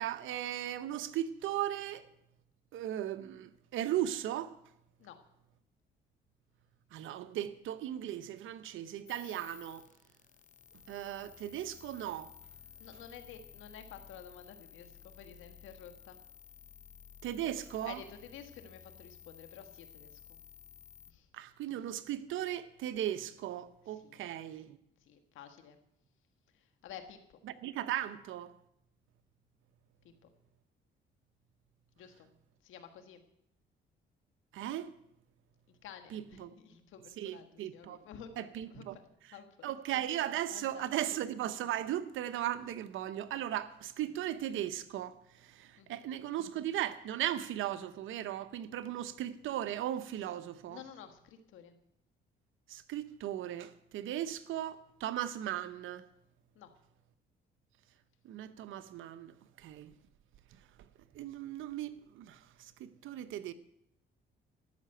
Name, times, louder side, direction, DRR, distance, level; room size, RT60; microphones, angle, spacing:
voice 1, 0.0-2.1 2.7-4.6 6.9-9.8 10.9-12.3 17.2-18.0 21.3-24.8 27.6-28.5 34.5-34.9 36.1-36.5 37.2-38.0 38.4-39.0 39.6-50.8 52.7-56.1 58.2-59.9 61.1-63.5, right 12 dB, 80° right, 0.9 m, -37 dB
sound 1, 9.1-21.1, left 8 dB, 40° left, 0.7 m, -55 dB
voice 2, 12.8-16.2 17.9-20.4 21.1-21.3 23.9-24.2 25.0-25.8 26.5-27.4 30.2-30.3 32.0-32.3 32.6-33.2 35.7-39.0 39.3-39.7 40.5-41.1 44.0-44.1 45.8-46.0 50.7-51.7 56.6-56.7, left 8 dB, 85° left, 1.6 m, -52 dB
12.5 x 6.7 x 9.1 m
cardioid pair, 90°, 20 cm